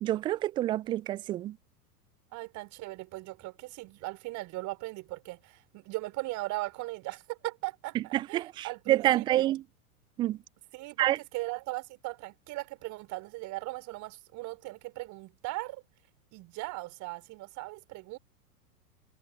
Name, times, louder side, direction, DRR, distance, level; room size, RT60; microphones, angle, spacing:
voice 1, 0.0-1.6 8.1-9.6 10.2-10.4 11.0-11.2, right 14 dB, 10° right, 0.4 m, -27 dB
voice 2, 2.3-9.5 10.7-15.8 16.3-18.2, right 21 dB, 40° right, 4.8 m, -38 dB
figure-of-eight pair, 95°, 46 cm